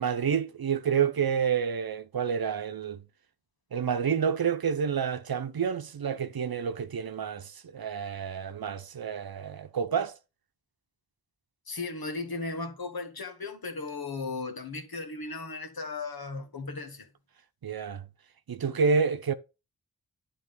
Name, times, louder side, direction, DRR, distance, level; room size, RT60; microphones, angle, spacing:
voice 1, 0.0-3.0 3.7-10.2 17.6-18.1 18.5-19.3, right 6 dB, 75° right, 0.8 m, -29 dB
voice 2, 11.7-17.1, left 3 dB, 75° left, 1.8 m, -36 dB
9.8 x 3.6 x 5.3 m
wide cardioid pair, 55°, 36 cm